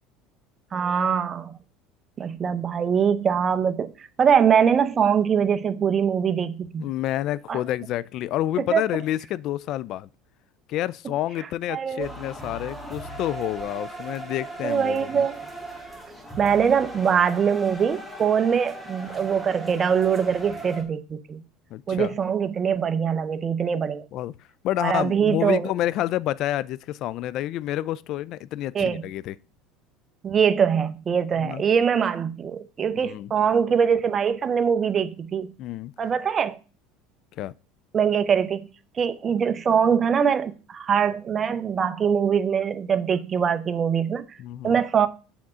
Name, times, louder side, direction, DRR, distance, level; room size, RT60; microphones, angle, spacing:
voice 1, 0.7-1.5 2.2-3.9 4.2-6.9 7.5-7.6 8.7-8.8 11.7-12.1 14.6-15.5 16.4-21.4 21.9-24.0 24.8-25.7 28.7-29.0 30.2-35.5 36.0-36.6 37.9-38.7 39.0-44.4 44.6-45.1, right 7 dB, 35° right, 0.7 m, -23 dB
voice 2, 6.8-10.1 10.7-15.3 21.7-22.1 24.1-24.3 24.6-29.4 31.4-31.6 33.0-33.3 35.6-35.9 37.4-37.5 44.4-44.8, left 13 dB, 55° left, 0.3 m, -29 dB
sound 1, 12.0-20.8, right 1 dB, 5° left, 2.0 m, -38 dB
7.1 x 3.6 x 6.2 m
supercardioid pair, 100°, 0 cm